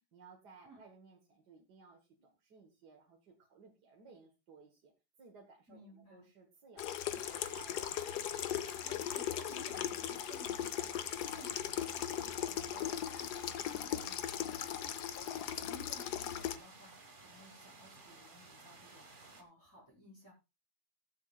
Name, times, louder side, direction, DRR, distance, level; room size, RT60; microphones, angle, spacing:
voice 1, 0.1-4.9 5.2-8.2, right 4 dB, 75° right, 0 dB, 2.1 m, -59 dB
voice 2, 5.7-6.2 8.8-20.3, right 1 dB, 10° left, -5 dB, 6.0 m, -58 dB
Water tap faucet / Sink (filling or washing), 6.8-16.6, left 10 dB, 80° left, 1.4 m, -38 dB
sound 1, 7.1-19.4, right 3 dB, 30° right, 1.5 m, -56 dB
21.5 x 7.1 x 2.4 m, 0.26 s
omnidirectional pair, 1.7 m